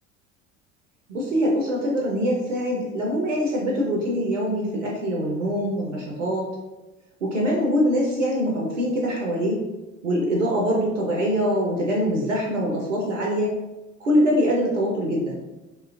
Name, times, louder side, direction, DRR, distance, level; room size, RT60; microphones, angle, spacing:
voice 1, 1.1-6.5 7.2-9.6 10.0-13.5 14.0-15.4, equal, 85° right, -2 dB, 0.5 m, -23 dB
2.9 x 2.2 x 2.3 m, 1.0 s
figure-of-eight pair, 60°, 37 cm